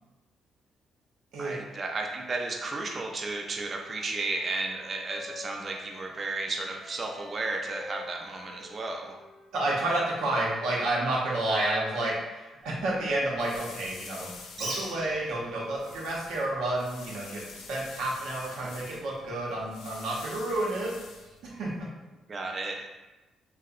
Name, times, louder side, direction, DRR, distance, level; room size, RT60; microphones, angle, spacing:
voice 1, 1.4-9.2 22.3-22.8, right 3 dB, 40° right, 1 dB, 0.3 m, -33 dB
Wind instrument woodwind instrument, 3.1-10.7, left 2 dB, 45° left, 0.6 m, -49 dB
voice 2, 9.5-20.9 21.4-21.9, right 1 dB, 85° right, -4 dB, 0.6 m, -30 dB
sound 1, 12.6-21.8, left 4 dB, 90° left, 0.3 m, -48 dB
Bird, 14.5-21.1, right 2 dB, 65° right, 0.9 m, -45 dB
2.7 x 2.0 x 2.4 m, 1.1 s
cardioid pair, 90°, 0 cm